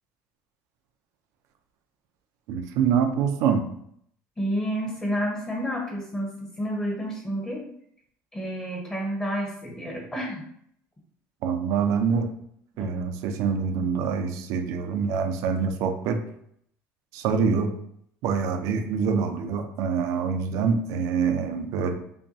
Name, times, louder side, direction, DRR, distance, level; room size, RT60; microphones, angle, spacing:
voice 1, 2.5-3.6 11.4-12.3 12.8-16.2 17.1-17.7 18.2-21.9, right 6 dB, 70° right, 6 dB, 0.5 m, -25 dB
voice 2, 4.4-7.7 8.3-10.4, equal, 15° left, -1 dB, 1.0 m, -30 dB
5.5 x 2.2 x 2.7 m, 0.69 s
cardioid pair, 130°, 6 cm